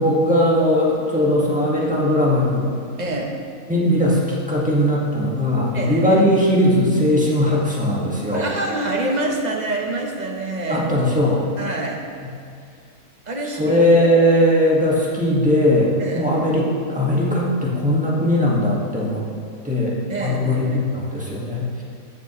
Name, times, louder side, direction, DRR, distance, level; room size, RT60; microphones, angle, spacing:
voice 1, 0.0-2.6 3.7-8.5 10.7-11.4 13.6-19.2 19.6-21.7, left 1 dB, 5° right, -5 dB, 1.5 m, -19 dB
voice 2, 3.0-3.3 5.7-6.2 8.3-10.9 11.6-12.0 13.3-13.7 16.0-16.3 20.1-20.8, right 2 dB, 35° right, 1 dB, 0.9 m, -26 dB
14.0 x 6.8 x 3.1 m, 2.3 s
omnidirectional pair, 1.4 m